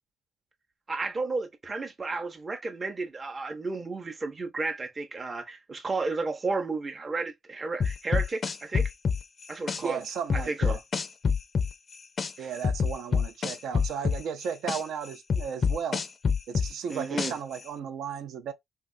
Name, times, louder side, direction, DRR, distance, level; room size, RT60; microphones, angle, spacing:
voice 1, 0.9-8.9 9.5-10.0 10.3-10.8 12.4-12.5 16.9-17.3, right 3 dB, 30° right, 0.6 m, -33 dB
sound 1, 7.8-9.8 10.3-12.3 12.6-14.8 15.3-17.6, left 6 dB, 45° left, 0.4 m, -26 dB
voice 2, 9.8-10.8 12.4-16.0 16.5-18.5, right 7 dB, 75° right, 0.5 m, -35 dB
3.2 x 2.4 x 2.5 m
cardioid pair, 90°, 0 cm